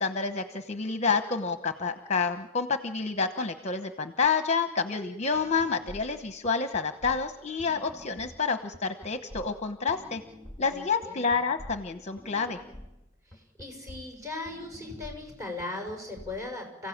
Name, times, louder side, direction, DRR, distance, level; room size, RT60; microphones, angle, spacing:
voice 1, 0.0-10.2 10.6-12.6, left 5 dB, 35° left, 8 dB, 1.0 m, -29 dB
sound 1, 5.3-16.4, left 1 dB, 5° left, 2.1 m, -48 dB
voice 2, 10.7-11.4 13.3-16.9, left 2 dB, 15° right, 2 dB, 6.2 m, -38 dB
29.5 x 16.0 x 8.7 m, 0.91 s
head